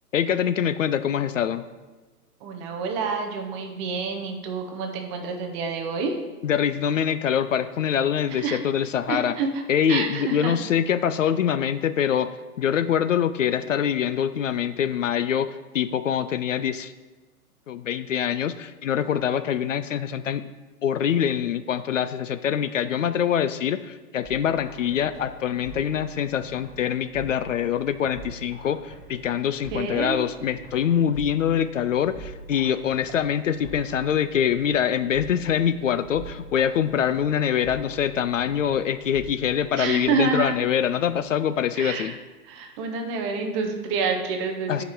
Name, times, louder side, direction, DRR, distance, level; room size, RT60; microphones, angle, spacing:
voice 1, 0.1-1.6 6.4-9.4 9.7-16.9 17.7-20.4 20.8-42.1 44.7-44.8, left 9 dB, 55° left, 12 dB, 0.5 m, -24 dB
voice 2, 2.4-6.2 8.4-8.6 9.1-9.5 9.9-10.5 29.7-30.2 39.8-40.6 41.8-42.2 42.5-44.8, right 4 dB, 20° right, 3 dB, 0.6 m, -28 dB
sound 1, 24.2-41.9, right 2 dB, 20° left, 2.9 m, -45 dB
11.0 x 5.1 x 4.5 m, 1.2 s
figure-of-eight pair, 125°, 47 cm